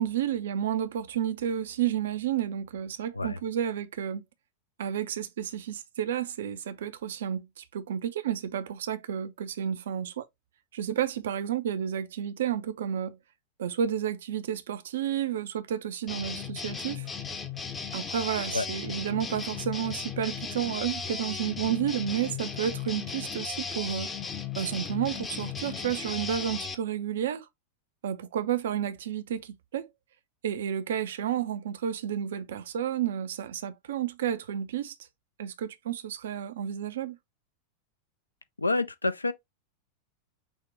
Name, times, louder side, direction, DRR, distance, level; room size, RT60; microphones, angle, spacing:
voice 1, 0.0-4.2 4.8-10.3 10.7-13.2 13.6-17.1 17.9-24.1 24.6-27.5 28.0-29.9 30.4-35.0 35.4-37.2, right 9 dB, 60° right, 0.5 m, -31 dB
sound 1, 16.1-26.8, left 5 dB, 20° left, 0.7 m, -36 dB
voice 2, 38.6-39.3, left 2 dB, 80° left, 0.4 m, -28 dB
6.1 x 2.1 x 3.4 m
figure-of-eight pair, 90°, 0 cm